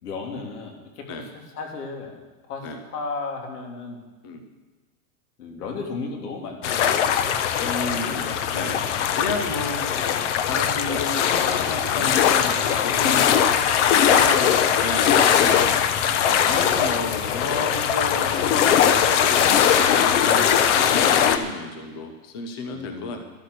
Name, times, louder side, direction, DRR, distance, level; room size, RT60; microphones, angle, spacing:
voice 1, 0.0-2.2 2.5-4.0 5.4-7.2 14.1-14.6 15.0-15.5 16.3-16.9 22.7-23.2, left 4 dB, 80° left, 1 dB, 3.6 m, -35 dB
sound 1, 6.6-21.4, left 8 dB, 50° left, 1.0 m, -20 dB
voice 2, 7.6-8.8 9.1-9.8 10.4-13.4 13.9-14.5 14.8-15.8 16.4-18.4 18.9-23.2, left 3 dB, 15° left, 5 dB, 0.4 m, -32 dB
13.0 x 12.5 x 6.6 m, 1.2 s
supercardioid pair, 175°, 45 cm